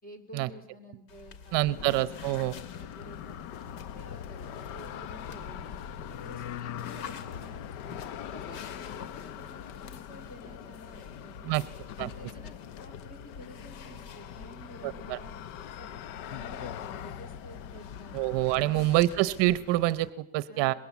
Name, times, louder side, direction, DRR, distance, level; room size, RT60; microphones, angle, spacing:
voice 1, 0.0-2.3 2.8-7.6 8.3-11.6 12.2-15.4 15.8-15.9 16.3-18.2 18.5-19.0 20.5-20.8, equal, 15° left, 9 dB, 3.5 m, -51 dB
sound 1, 1.1-19.6, left 6 dB, 85° left, 2.7 m, -48 dB
voice 2, 1.5-2.5 11.4-11.6 12.0-12.1 14.8-15.2 18.1-20.7, right 17 dB, 55° right, 16 dB, 0.9 m, -26 dB
sound 2, 1.7-20.1, left 9 dB, 70° left, 1.0 m, -42 dB
25.0 x 21.5 x 8.2 m, 0.78 s
cardioid pair, 170°, 50 cm